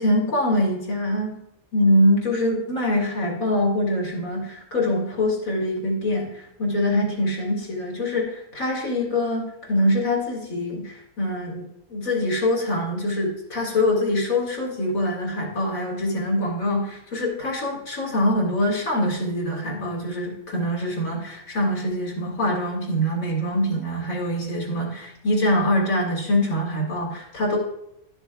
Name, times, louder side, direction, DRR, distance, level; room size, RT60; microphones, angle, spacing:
voice 1, 0.0-1.4 1.7-27.6, left 1 dB, 80° left, -2 dB, 2.5 m, -24 dB
12.0 x 6.8 x 2.3 m, 0.80 s
omnidirectional pair, 1.4 m